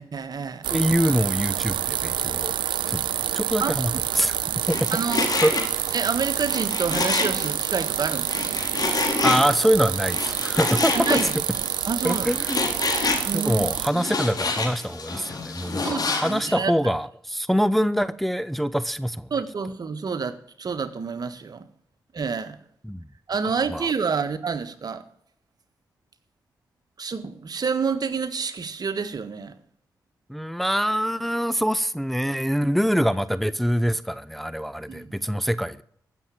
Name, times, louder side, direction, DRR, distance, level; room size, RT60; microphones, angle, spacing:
voice 1, 0.0-0.7 3.6-4.0 4.9-5.2 5.9-8.6 10.9-11.3 11.8-12.3 13.3-13.5 13.9-14.0 15.8-16.7 19.3-21.6 22.1-22.6 23.3-25.0 27.0-29.6 34.9-35.1, right 5 dB, 55° right, 1.5 m, -28 dB
sound 1, 0.6-13.9, right 11 dB, 85° right, 0.5 m, -28 dB
voice 2, 0.7-2.6 2.9-3.1 3.3-4.4 4.7-4.9 5.4-5.5 9.2-11.2 12.0-12.6 13.3-19.3 22.8-23.0 23.7-23.9 30.3-35.8, equal, ahead, 0.7 m, -24 dB
Frying (food), 4.6-16.5, left 3 dB, 55° left, 4.2 m, -29 dB
14.5 x 7.3 x 8.7 m
supercardioid pair, 45°, 8 cm